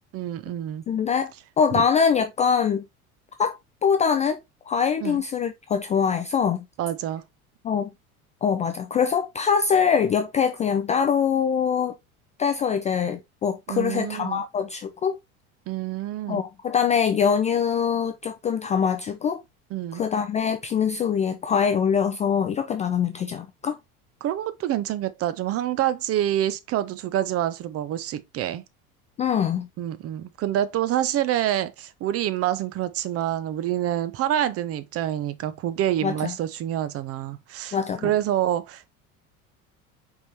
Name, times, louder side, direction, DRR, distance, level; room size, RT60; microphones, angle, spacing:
voice 1, 0.1-0.8 1.7-1.8 5.0-5.2 6.8-7.2 13.7-14.4 15.7-16.4 19.7-20.0 24.2-28.6 29.8-37.8 38.0-38.9, right 12 dB, 35° right, 0.6 m, -27 dB
voice 2, 0.9-2.8 3.4-6.7 7.6-7.9 8.4-11.9 12.4-15.2 16.3-19.4 19.9-23.8 29.2-29.7 36.0-36.3 37.7-38.1, left 7 dB, 20° left, 0.3 m, -23 dB
5.0 x 3.6 x 2.9 m
figure-of-eight pair, 75°, 44 cm